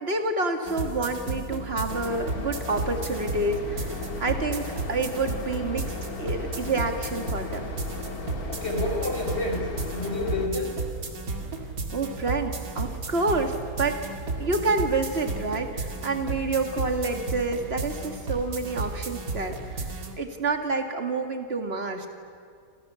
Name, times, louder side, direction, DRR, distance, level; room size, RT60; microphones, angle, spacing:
voice 1, 0.0-3.9 4.2-5.9 6.2-7.7 11.9-14.0 14.4-22.1, right 3 dB, 40° right, 5 dB, 2.4 m, -28 dB
sound 1, 0.7-20.1, right 3 dB, 60° right, 2.7 m, -34 dB
sound 2, 1.9-10.5, left 4 dB, 65° left, 2.4 m, -37 dB
voice 2, 8.5-10.8 14.4-14.6, left 2 dB, 40° left, 2 dB, 5.4 m, -30 dB
28.0 x 27.5 x 7.1 m, 2.2 s
omnidirectional pair, 1.7 m